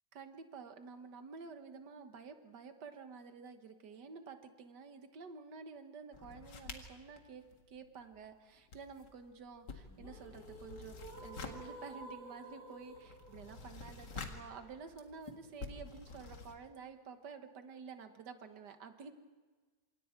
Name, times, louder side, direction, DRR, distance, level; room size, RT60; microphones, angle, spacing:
voice 1, 0.1-19.1, right 5 dB, 75° right, 7 dB, 2.0 m, -51 dB
sound 1, 6.1-8.3 8.6-16.6, left 4 dB, 80° left, 2.5 m, -50 dB
sound 2, 9.8-15.8, right 1 dB, 30° left, 5.4 m, -53 dB
27.5 x 26.5 x 4.5 m, 1.4 s
omnidirectional pair, 1.9 m